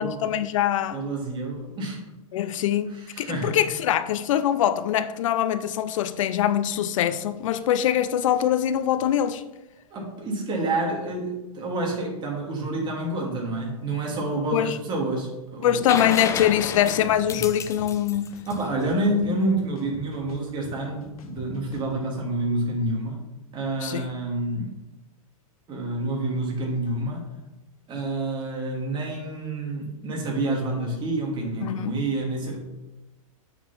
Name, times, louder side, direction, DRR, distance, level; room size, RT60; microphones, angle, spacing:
voice 1, 0.0-1.0 2.3-9.4 14.5-14.8 15.6-18.4 23.8-24.1 31.6-32.0, left 10 dB, 60° left, 0.6 m, -23 dB
voice 2, 0.9-2.0 2.9-3.6 9.9-15.8 17.3-17.4 18.5-23.2 23.5-24.8 25.7-27.3 27.9-32.6, right 2 dB, 25° right, 2.8 m, -28 dB
sound 1, 15.9-19.6 21.5-21.6, left 7 dB, 15° left, 0.6 m, -32 dB
sound 2, 16.4-16.5 16.9-17.9 18.3-19.4 19.8-21.9, left 4 dB, 75° left, 1.3 m, -45 dB
8.0 x 5.5 x 5.9 m
hypercardioid pair, 130°, 19 cm